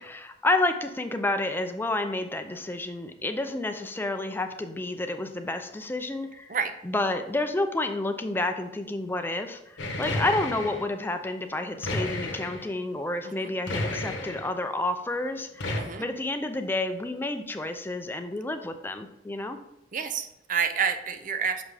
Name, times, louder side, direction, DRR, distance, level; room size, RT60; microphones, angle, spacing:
voice 1, 0.0-6.6 6.8-15.7 16.0-19.6, left 2 dB, 10° left, 7 dB, 0.4 m, -30 dB
sound 1, 9.8-10.9 11.8-12.7 13.7-14.5 15.6-15.8, left 2 dB, 90° left, 1.1 m, -31 dB
voice 2, 15.7-16.0 19.9-21.6, right 6 dB, 45° right, 8 dB, 0.5 m, -29 dB
6.0 x 5.4 x 3.4 m, 0.87 s
head